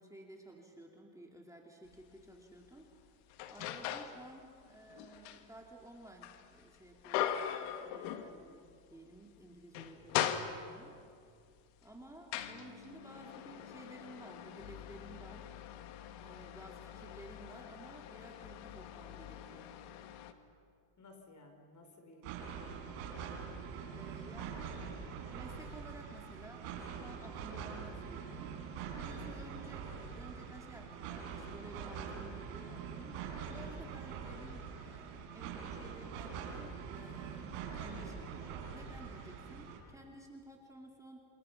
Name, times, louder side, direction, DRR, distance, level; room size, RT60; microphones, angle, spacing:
voice 1, 0.0-3.0 3.5-8.6 8.9-10.9 11.8-15.5 16.2-19.7 23.9-24.8 25.3-41.2, right 1 dB, 5° right, 0 dB, 2.6 m, -54 dB
sound 1, 1.9-2.1 2.6-4.2 4.6-8.7 9.0-9.2 9.6-11.0 11.7-20.3, left 10 dB, 85° left, 1.7 m, -41 dB
voice 2, 21.0-23.0 24.3-24.9, left 2 dB, 35° left, 4 dB, 4.5 m, -58 dB
sound 2, 22.2-39.8, right 6 dB, 85° right, 5.1 m, -44 dB
28.5 x 27.0 x 5.9 m, 2.3 s
cardioid pair, 120°, 49 cm